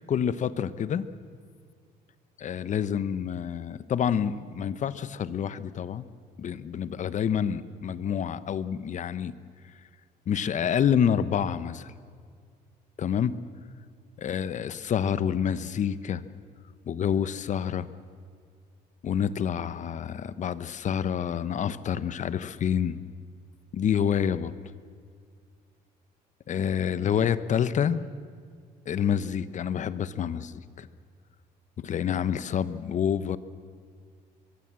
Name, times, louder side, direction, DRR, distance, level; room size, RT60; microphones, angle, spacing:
voice 1, 0.1-1.1 2.4-6.1 6.4-9.3 10.3-11.9 13.0-13.4 14.2-16.2 16.9-17.9 19.0-23.0 23.7-24.5 26.5-28.0 28.9-30.9 31.8-33.4, left 8 dB, 45° left, 14 dB, 1.0 m, -28 dB
25.0 x 22.0 x 7.6 m, 2.1 s
cardioid pair, 110°, 17 cm